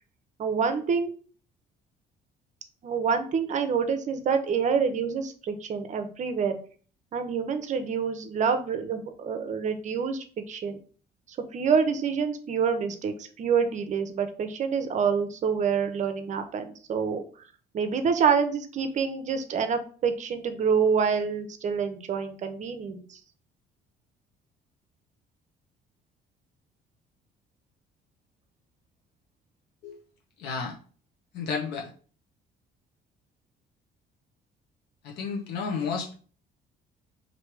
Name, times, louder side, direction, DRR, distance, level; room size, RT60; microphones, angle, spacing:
voice 1, 0.4-1.1 2.8-6.6 7.1-10.8 11.5-17.2 17.7-23.2, right 6 dB, 45° right, 8 dB, 0.6 m, -27 dB
voice 2, 30.4-30.8 31.3-31.9 35.0-36.1, left 5 dB, 80° left, -1 dB, 0.8 m, -32 dB
3.1 x 2.7 x 4.5 m, 0.41 s
cardioid pair, 110°, 17 cm